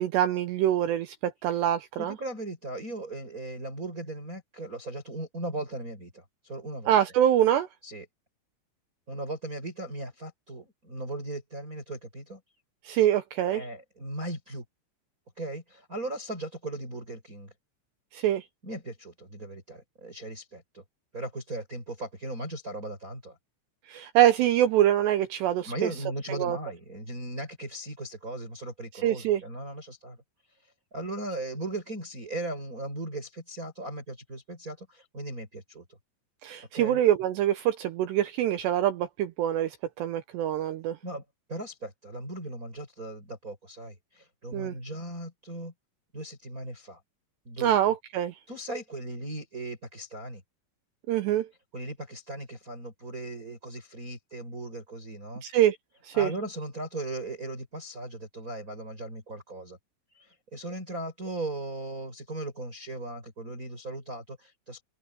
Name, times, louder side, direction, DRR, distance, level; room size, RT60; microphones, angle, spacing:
voice 1, 0.0-2.1 6.9-7.7 12.9-13.6 18.1-18.4 23.9-25.9 26.4-26.6 29.0-29.4 36.4-41.0 44.5-44.7 47.6-48.3 51.1-51.5 55.4-55.8 56.1-56.3, right 11 dB, 80° right, 2.6 m, -25 dB
voice 2, 2.0-7.0 7.8-8.1 9.1-12.4 13.5-14.6 15.4-17.5 18.6-20.8 21.1-23.4 25.6-30.2 30.6-35.9 36.7-37.0 41.0-41.2 41.5-45.7 46.1-47.0 47.5-47.9 48.5-50.4 51.7-55.4 56.1-59.8 60.1-64.8, right 2 dB, 15° right, 7.0 m, -38 dB
omnidirectional pair, 5.8 m